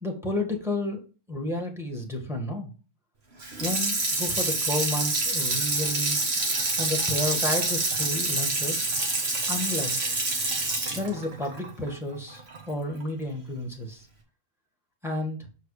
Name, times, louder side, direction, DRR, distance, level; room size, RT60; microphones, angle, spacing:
voice 1, 0.0-1.0 1.3-2.7 3.6-6.2 6.8-8.9 9.5-10.3 10.9-14.1 15.0-15.4, left 1 dB, ahead, 1 dB, 1.5 m, -31 dB
Water tap faucet / Sink (filling or washing), 3.4-12.6 13.0-13.1, right 2 dB, 40° right, 1.7 m, -27 dB
6.7 x 4.6 x 4.9 m, 0.34 s
omnidirectional pair, 1.6 m